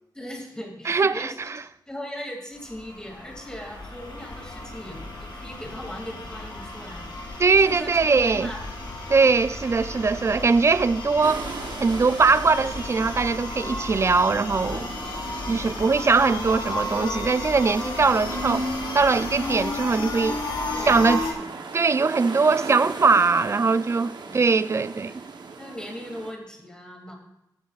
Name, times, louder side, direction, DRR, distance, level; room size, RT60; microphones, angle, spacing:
voice 1, 0.1-1.5 1.9-8.6 15.7-15.9 20.7-21.5 24.2-24.3 24.8-25.2 25.6-27.1, equal, 10° left, 2.4 m, -39 dB
voice 2, 0.9-1.3 7.4-8.5 9.1-11.5 11.8-14.9 15.5-18.7 18.9-20.4 20.9-21.2 21.7-25.1, right 4 dB, 35° right, 0.3 m, -21 dB
sound 1, 2.6-21.3, left 2 dB, 80° left, 1.6 m, -33 dB
sound 2, 11.2-26.3, right 4 dB, 70° right, 0.9 m, -39 dB
15.0 x 9.2 x 2.4 m
wide cardioid pair, 125°, 8 cm